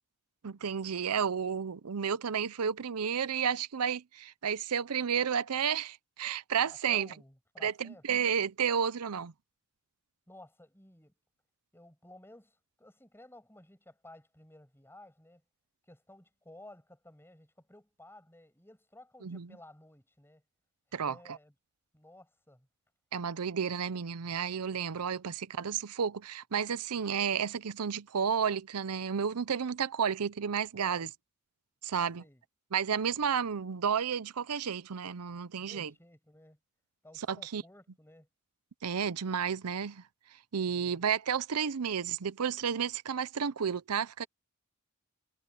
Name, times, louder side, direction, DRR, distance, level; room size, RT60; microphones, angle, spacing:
voice 1, 0.4-7.1 7.6-9.3 19.2-19.5 20.9-21.4 23.1-31.1 31.8-32.2 32.7-35.9 37.2-37.6 38.8-40.0 40.5-44.3, right 7 dB, 90° right, 0.6 m, -32 dB
voice 2, 6.7-8.0 10.3-11.1 11.7-15.4 15.9-20.4 21.1-21.5 21.9-22.7 30.7-31.1 32.0-32.4 33.0-33.4 35.5-36.6 37.0-38.3 40.6-41.1, left 1 dB, 10° left, 7.9 m, -55 dB
head